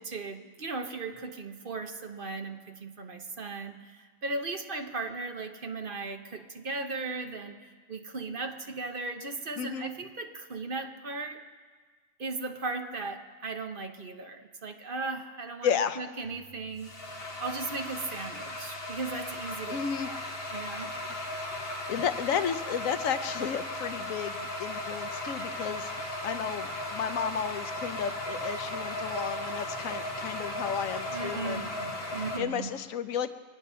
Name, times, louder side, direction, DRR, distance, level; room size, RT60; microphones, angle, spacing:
voice 1, 0.0-7.6 7.9-11.4 12.2-17.0 17.4-20.2 20.5-20.9 31.1-32.7, right 3 dB, 45° right, 5 dB, 1.1 m, -37 dB
voice 2, 9.6-9.9 15.6-16.0 19.7-20.1 21.0-21.2 21.6-31.7 32.4-33.3, left 8 dB, 85° left, 11 dB, 1.1 m, -33 dB
sound 1, 16.2-32.4, left 1 dB, 50° left, 1.9 m, -36 dB
24.0 x 9.4 x 5.6 m, 1.5 s
omnidirectional pair, 1.4 m